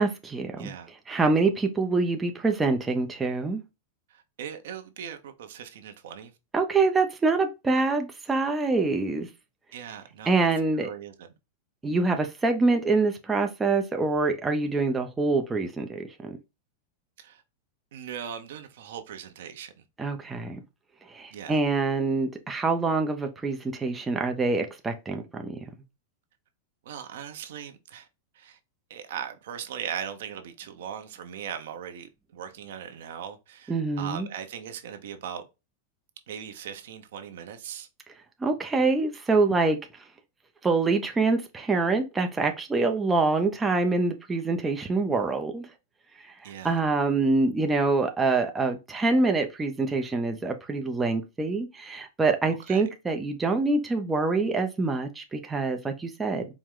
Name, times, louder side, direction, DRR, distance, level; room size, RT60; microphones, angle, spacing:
voice 1, 0.0-0.7 1.1-3.6 6.5-9.3 10.3-10.9 11.8-16.4 20.0-20.6 21.1-25.6 33.7-34.3 38.4-39.8 40.6-45.7 46.6-56.5, right 3 dB, 10° right, 0.5 m, -25 dB
voice 2, 0.6-0.9 4.1-6.3 9.7-10.5 10.7-11.3 17.2-17.4 17.9-19.8 21.3-21.6 26.8-28.1 28.3-28.6 28.9-35.5 36.3-37.9 46.4-46.8 52.4-52.8, right 8 dB, 70° right, 0.8 m, -39 dB
4.6 x 2.1 x 3.7 m
supercardioid pair, 145°, 0 cm